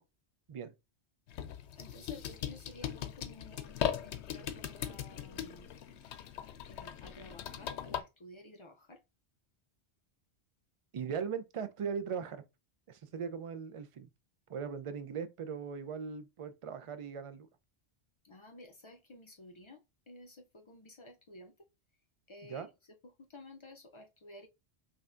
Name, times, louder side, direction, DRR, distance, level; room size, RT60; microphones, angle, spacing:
sound 1, 1.3-8.0, left 10 dB, 85° left, 0.9 m, -39 dB
voice 1, 1.8-3.7 4.0-5.7 6.7-9.0 18.3-19.8 20.1-20.4 20.7-21.5 22.3-22.6 23.3-24.5, left 1 dB, 50° left, 0.3 m, -53 dB
voice 2, 10.9-12.4 12.9-14.1 14.5-17.5 22.5-22.7, right 6 dB, 60° right, 0.3 m, -39 dB
5.5 x 2.7 x 2.4 m
omnidirectional pair, 1.1 m